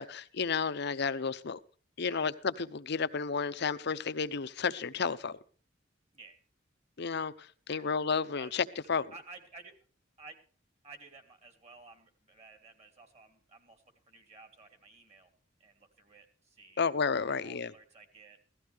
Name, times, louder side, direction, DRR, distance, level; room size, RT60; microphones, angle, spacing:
voice 1, 0.0-1.6 2.0-5.4 7.0-9.1 16.8-17.7, left 5 dB, 60° left, 0.7 m, -32 dB
voice 2, 2.0-2.3 6.1-6.4 7.7-7.9 8.4-8.5 9.1-9.7 10.2-10.4 10.8-15.3 15.6-16.8 17.3-18.4, right 3 dB, 35° right, 2.8 m, -54 dB
16.5 x 13.5 x 3.4 m
head